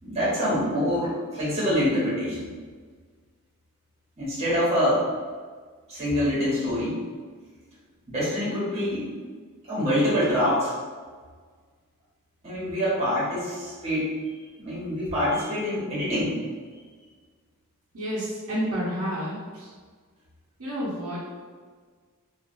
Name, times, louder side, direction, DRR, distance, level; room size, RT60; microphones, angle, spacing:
voice 1, 0.0-2.5 4.2-5.0 5.9-7.0 8.1-9.1 9.7-10.8 12.4-14.1 14.6-16.4, equal, 30° right, -9 dB, 1.3 m, -25 dB
voice 2, 17.9-19.7 20.6-21.3, equal, 75° right, -7 dB, 0.9 m, -30 dB
3.1 x 2.5 x 2.6 m, 1.5 s
head